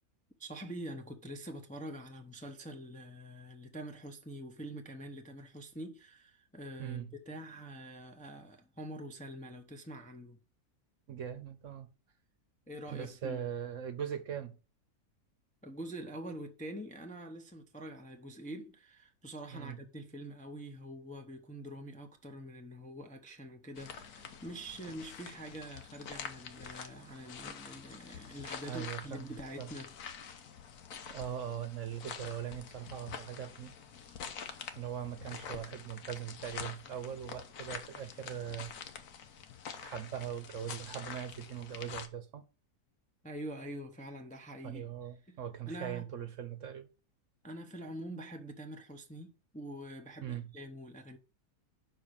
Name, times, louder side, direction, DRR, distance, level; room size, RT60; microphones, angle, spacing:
voice 1, 0.4-10.4 12.7-13.4 15.6-30.3 43.2-44.8 45.3-45.4 45.7-46.1 47.4-51.2, right 1 dB, 10° left, 0.6 m, -45 dB
voice 2, 6.8-7.1 11.1-11.9 12.9-14.6 19.5-19.8 28.6-29.7 31.1-34.1 34.7-38.7 39.8-42.4 44.6-46.9 50.2-50.5, right 9 dB, 60° right, 1.1 m, -41 dB
sound 1, 23.8-42.1, left 7 dB, 85° left, 1.4 m, -47 dB
5.7 x 4.8 x 6.5 m
omnidirectional pair, 1.6 m